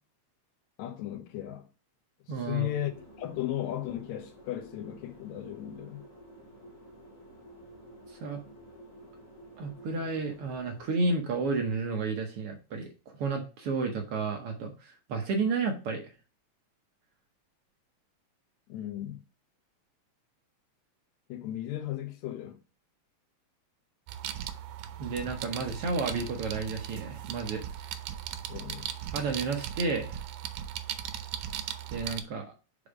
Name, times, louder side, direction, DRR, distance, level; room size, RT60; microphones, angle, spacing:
voice 1, 0.8-1.7 2.3-6.0 18.7-19.2 21.3-22.6 28.5-28.9, left 13 dB, 75° left, 2.0 m, -36 dB
voice 2, 2.3-2.7 8.1-8.4 9.6-12.9 13.2-16.0 25.0-27.9 29.1-30.2 31.9-32.5, right 4 dB, 65° right, 1.5 m, -31 dB
sound 1, 2.5-10.9, right 1 dB, 20° left, 1.3 m, -51 dB
sound 2, 24.1-32.2, right 10 dB, 85° right, 2.1 m, -38 dB
5.2 x 4.8 x 4.9 m
omnidirectional pair, 3.3 m